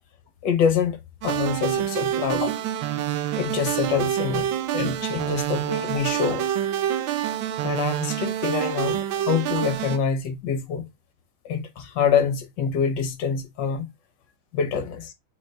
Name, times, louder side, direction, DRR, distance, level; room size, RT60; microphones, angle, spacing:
voice 1, 0.4-2.5 3.4-6.5 7.6-10.8 11.4-13.9 14.5-15.1, left 6 dB, 60° left, 1.5 m, -26 dB
sound 1, 1.2-10.0, right 11 dB, 75° right, 1.3 m, -27 dB
4.1 x 3.9 x 3.2 m
omnidirectional pair, 2.4 m